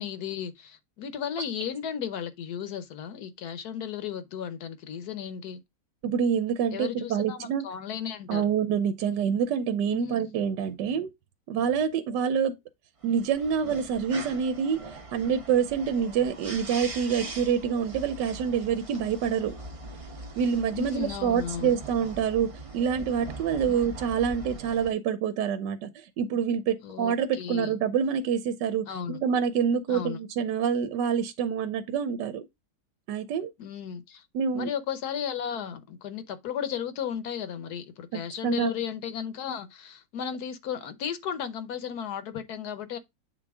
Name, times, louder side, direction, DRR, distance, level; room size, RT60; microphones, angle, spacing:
voice 1, 0.0-5.6 6.7-8.5 9.9-10.2 20.7-21.8 23.7-23.8 26.8-27.8 28.9-29.2 29.9-30.2 33.6-34.3 34.5-43.0, left 8 dB, 65° left, 1.2 m, -35 dB
voice 2, 6.0-7.7 8.3-11.1 11.5-12.5 13.0-14.8 15.1-19.6 20.4-32.5 33.1-33.5 34.3-34.7 38.1-38.7, right 7 dB, 70° right, 1.3 m, -27 dB
sound 1, 13.0-24.9, right 3 dB, 35° right, 0.5 m, -41 dB
8.5 x 3.9 x 3.5 m
omnidirectional pair, 2.0 m